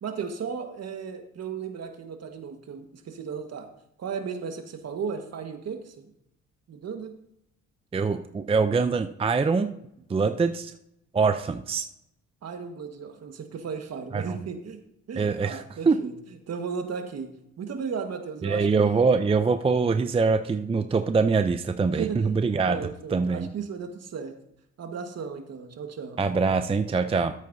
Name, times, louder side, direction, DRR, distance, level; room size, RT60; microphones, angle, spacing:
voice 1, 0.0-3.7 4.0-6.1 6.7-7.1 12.4-14.8 15.1-16.1 16.5-17.3 17.6-19.1 21.9-22.3 22.6-24.3 24.8-26.2, right 6 dB, 55° right, 5 dB, 1.6 m, -35 dB
voice 2, 7.9-9.7 10.1-10.7 11.1-11.9 14.1-14.4 15.2-16.0 18.4-22.8 23.1-23.5 26.2-27.3, right 4 dB, 20° right, 8 dB, 0.5 m, -24 dB
13.5 x 8.2 x 2.7 m, 0.78 s
cardioid pair, 90°, 30 cm